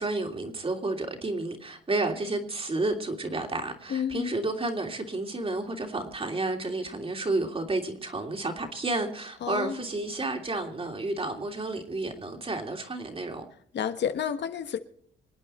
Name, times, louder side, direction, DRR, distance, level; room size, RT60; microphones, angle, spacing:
voice 1, 0.0-13.4, right 2 dB, 30° right, 3.1 m, -31 dB
voice 2, 3.9-4.3 9.4-9.9 13.7-14.8, left 8 dB, 60° left, 1.3 m, -30 dB
26.5 x 9.0 x 4.3 m
cardioid pair, 90°, 20 cm